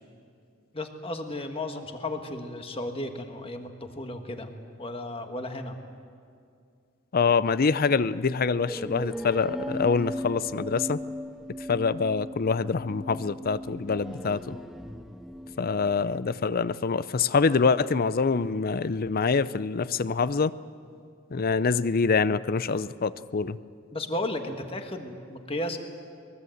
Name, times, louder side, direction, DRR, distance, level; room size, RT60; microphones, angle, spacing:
voice 1, 0.7-4.5 4.8-5.8 23.9-25.8, left 1 dB, 25° left, 5 dB, 1.6 m, -34 dB
voice 2, 7.1-11.0 11.7-14.6 15.6-20.5 21.3-23.6, left 5 dB, 45° left, 16 dB, 0.5 m, -25 dB
sound 1, 8.7-16.3, equal, ahead, 0.6 m, -38 dB
23.0 x 21.5 x 7.9 m, 2.3 s
head